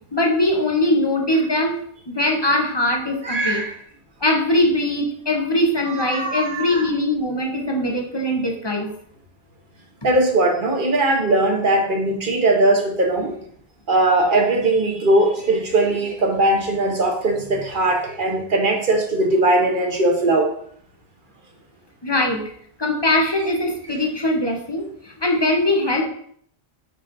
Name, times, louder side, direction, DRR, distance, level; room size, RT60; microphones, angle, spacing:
voice 1, 0.1-1.8 2.1-3.6 4.2-8.9 22.0-22.4 22.8-26.1, left 1 dB, 25° left, 2 dB, 0.9 m, -21 dB
voice 2, 3.2-3.7 5.8-6.9 10.0-13.3 13.9-20.5, right 2 dB, 55° right, 2 dB, 1.3 m, -19 dB
8.6 x 3.1 x 3.9 m, 0.64 s
omnidirectional pair, 1.1 m